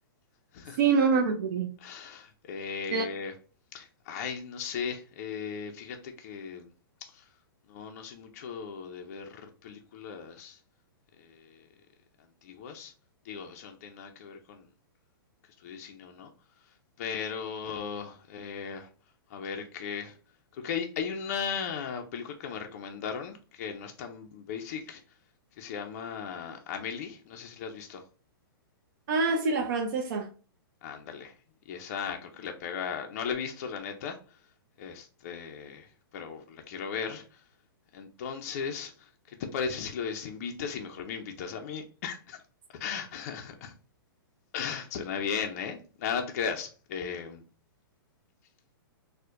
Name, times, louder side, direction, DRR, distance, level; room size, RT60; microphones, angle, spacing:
voice 1, 0.8-1.7 2.9-3.0 29.1-30.3, right 4 dB, 50° right, 0.5 m, -25 dB
voice 2, 1.8-3.3 3.7-6.7 7.0-7.3 7.7-10.6 11.2-11.7 12.4-12.9 13.2-14.7 15.6-16.3 16.6-18.9 19.3-20.2 20.5-25.0 25.6-28.0 30.8-31.4 31.7-34.4 34.8-37.4 37.9-42.4 42.8-43.7 44.5-47.4, left 6 dB, 40° left, 0.4 m, -37 dB
4.3 x 2.1 x 2.4 m
hypercardioid pair, 165°, 13 cm